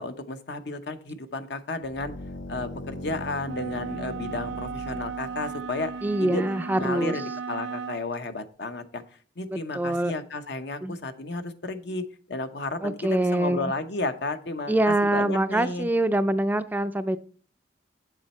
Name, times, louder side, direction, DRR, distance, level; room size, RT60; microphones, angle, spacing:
voice 1, 0.0-2.1 2.5-5.9 6.2-6.4 6.7-9.0 9.4-12.0 12.3-15.9, left 2 dB, 65° left, 9 dB, 0.9 m, -32 dB
sound 1, 1.8-6.2, equal, 85° left, 1.2 m, -40 dB
sound 2, 3.4-8.1, right 6 dB, 75° right, 0.4 m, -36 dB
voice 2, 6.0-7.2 9.5-10.1 10.8-11.0 12.8-13.7 14.7-17.2, right 1 dB, 10° right, 11 dB, 0.4 m, -24 dB
8.2 x 7.4 x 4.3 m, 0.43 s
head